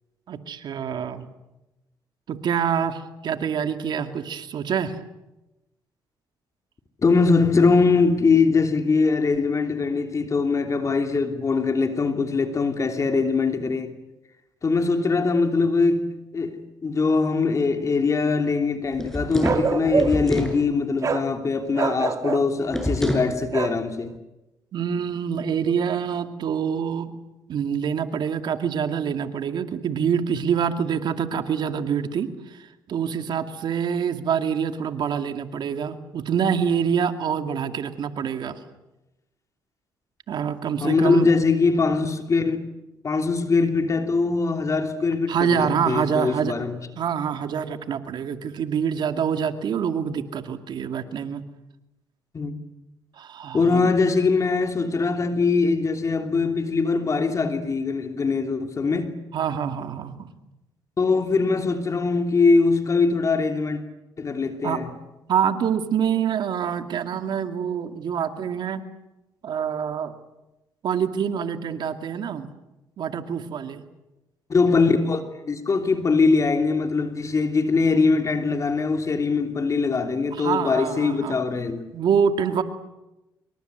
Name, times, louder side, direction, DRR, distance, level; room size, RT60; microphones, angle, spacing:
voice 1, 0.3-1.3 2.3-4.9 24.7-27.1 27.5-38.6 40.3-41.3 45.3-46.5 47.0-51.4 53.2-53.9 59.3-60.3 64.6-64.8 65.3-68.8 69.4-70.1 70.8-72.5 73.0-73.8 80.3-81.4 81.9-82.6, right 7 dB, 65° right, 2.4 m, -26 dB
voice 2, 7.0-13.9 14.6-24.1 40.8-42.6 43.0-46.8 52.3-52.5 53.5-59.1 61.0-63.8 64.2-64.9 74.5-81.9, left 4 dB, 40° left, 3.0 m, -22 dB
sound 1, 18.9-20.6 22.7-23.3, equal, 5° left, 6.6 m, -26 dB
Bark, 19.4-20.3 21.0-21.3 21.7-22.5 23.5-23.8, right 5 dB, 45° right, 1.4 m, -25 dB
26.5 x 24.0 x 8.1 m
cardioid pair, 75°, 8 cm